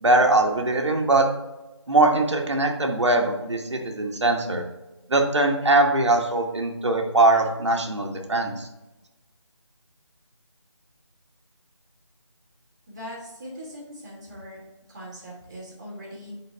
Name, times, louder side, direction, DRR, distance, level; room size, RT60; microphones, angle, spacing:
voice 1, 0.0-1.3 1.9-4.6 5.1-8.7, right 2 dB, 65° right, 2 dB, 1.1 m, -21 dB
voice 2, 12.9-14.6 14.9-16.3, equal, 10° right, -11 dB, 1.4 m, -40 dB
8.5 x 3.9 x 3.3 m, 1.0 s
figure-of-eight pair, 175°, 16 cm